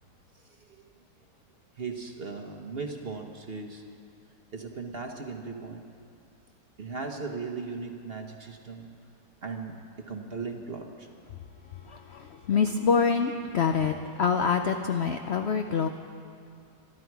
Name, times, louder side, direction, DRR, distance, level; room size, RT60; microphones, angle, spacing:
voice 1, 1.8-3.8 4.5-5.8 6.8-8.9 9.4-11.1, right 4 dB, 40° right, 3 dB, 1.1 m, -37 dB
voice 2, 11.8-15.9, left 6 dB, 65° left, 6 dB, 0.6 m, -26 dB
25.0 x 11.0 x 4.7 m, 2.5 s
omnidirectional pair, 1.8 m